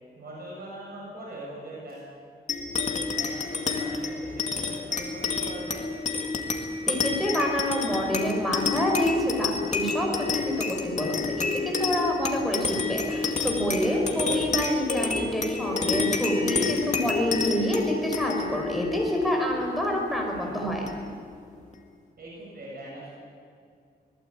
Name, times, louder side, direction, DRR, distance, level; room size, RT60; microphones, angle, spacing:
voice 1, 0.2-2.1 3.2-5.8 13.8-14.3 20.3-20.7 22.2-23.1, right 1 dB, 60° right, -4 dB, 7.4 m, -42 dB
sound 1, 2.5-21.3, left 4 dB, 40° left, 2.3 m, -29 dB
voice 2, 6.9-20.9, equal, ahead, 0 dB, 5.3 m, -27 dB
25.5 x 19.5 x 8.8 m, 2.3 s
wide cardioid pair, 175°, 18 cm